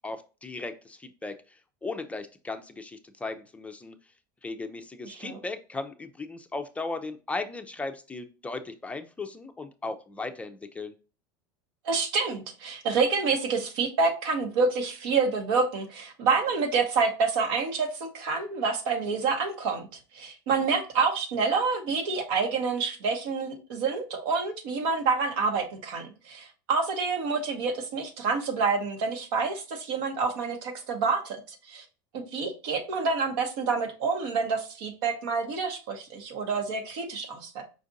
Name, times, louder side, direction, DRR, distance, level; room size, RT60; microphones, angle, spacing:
voice 1, 0.0-4.0 4.4-10.9, left 3 dB, 10° left, 7 dB, 0.4 m, -37 dB
voice 2, 5.0-5.4 11.8-19.9 20.1-31.8 32.1-37.6, right 4 dB, 80° right, 5 dB, 1.1 m, -28 dB
5.1 x 2.5 x 3.9 m, 0.33 s
supercardioid pair, 130°, 11 cm